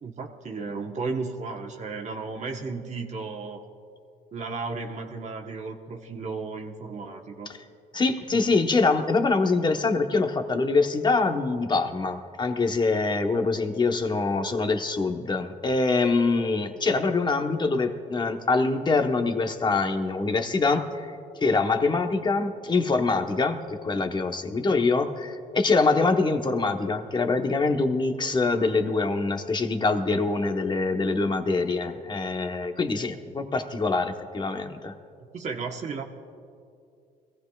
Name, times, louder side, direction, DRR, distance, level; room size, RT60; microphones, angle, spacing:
voice 1, 0.0-3.7 4.3-7.5 8.3-8.5 35.2-36.0, right 4 dB, 50° right, 2 dB, 1.2 m, -34 dB
voice 2, 7.9-21.1 21.4-34.9, left 3 dB, 30° left, 6 dB, 1.1 m, -24 dB
22.0 x 15.5 x 2.4 m, 2.4 s
cardioid pair, 80°, 16 cm